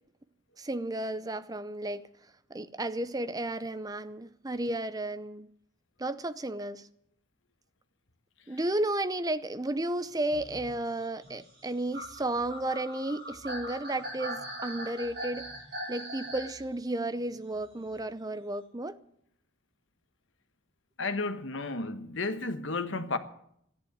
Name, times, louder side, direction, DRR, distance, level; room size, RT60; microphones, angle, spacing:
voice 1, 0.6-2.0 2.5-5.5 6.0-6.9 8.5-15.5 15.9-19.0, right 1 dB, 20° right, 0.6 m, -33 dB
sound 1, 10.2-16.6 17.9-18.0, right 1 dB, 50° right, 6.1 m, -40 dB
voice 2, 21.0-23.2, left 3 dB, 70° left, 1.4 m, -32 dB
13.5 x 11.0 x 9.3 m
head